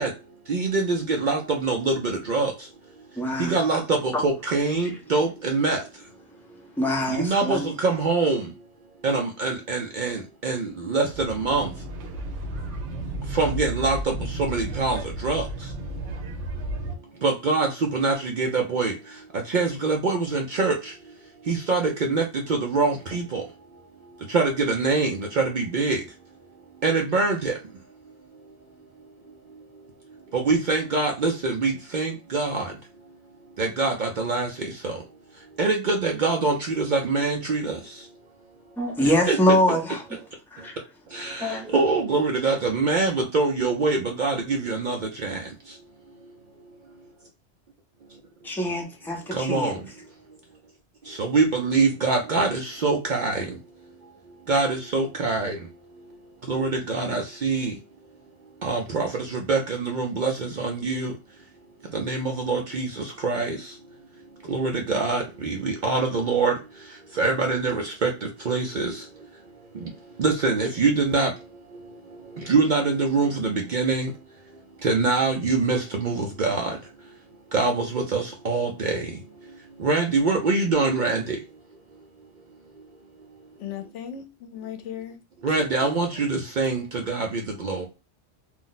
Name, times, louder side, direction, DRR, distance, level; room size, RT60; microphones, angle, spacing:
voice 1, 0.0-6.1 6.5-6.7 7.1-8.6 9.0-11.8 13.2-15.7 16.8-26.1 26.7-27.8 28.0-28.1 28.4-28.5 29.2-29.8 30.1-32.8 33.6-35.1 35.3-38.1 39.0-39.6 40.6-40.7 41.1-45.8 46.2-46.4 46.6-46.8 48.1-48.2 49.3-49.9 51.0-57.8 58.6-61.2 61.8-77.2 77.5-81.5 82.7-82.8 85.4-87.9, right 3 dB, 60° right, 0.5 m, -25 dB
voice 2, 3.2-3.6 6.8-7.7 38.8-40.0 40.5-40.7 41.4-41.7 48.4-49.7, equal, 5° left, 0.5 m, -24 dB
sound 1, 11.1-17.0, right 1 dB, 80° right, 1.0 m, -33 dB
voice 3, 83.6-85.2 85.5-85.9, left 8 dB, 85° left, 0.9 m, -37 dB
2.5 x 2.0 x 3.8 m
omnidirectional pair, 1.2 m